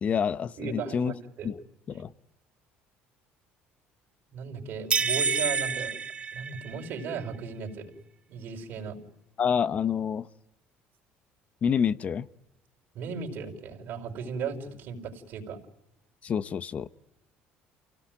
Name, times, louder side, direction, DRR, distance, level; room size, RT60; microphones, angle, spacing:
voice 1, 0.0-1.1 1.4-1.6 1.9-2.1 9.4-10.3 11.6-12.3 16.2-16.9, left 7 dB, 35° left, 17 dB, 0.9 m, -27 dB
voice 2, 0.6-1.5 4.3-6.0 6.3-7.9 8.3-9.0 12.9-15.6, right 5 dB, 60° right, 3 dB, 5.1 m, -36 dB
sound 1, 4.9-7.1, right 5 dB, 30° right, 1.2 m, -28 dB
29.0 x 18.0 x 9.3 m, 0.92 s
cardioid pair, 130°, 4 cm